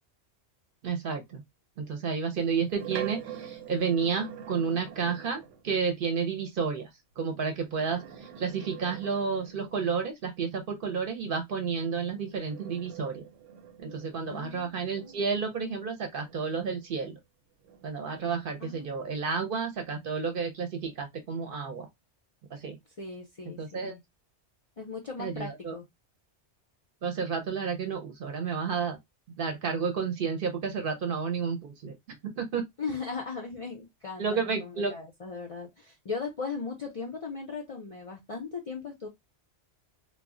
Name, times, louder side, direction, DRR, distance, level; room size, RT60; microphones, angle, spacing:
voice 1, 0.8-1.4 1.8-6.9 7.2-8.0 8.4-13.3 13.8-17.2 17.8-21.9 22.5-22.8 23.6-24.0 25.2-25.7 27.0-29.0 29.4-31.9 32.4-32.6 34.2-34.9, right 5 dB, 55° right, 0.7 m, -31 dB
sound 1, 2.3-5.7 7.6-9.9 11.9-17.1 17.6-19.4, right 9 dB, 90° right, 0.9 m, -45 dB
voice 2, 14.3-15.2 18.6-19.0 23.0-24.0 24.8-25.9 32.8-39.1, left 4 dB, 50° left, 0.4 m, -38 dB
2.2 x 2.0 x 3.6 m
omnidirectional pair, 1.2 m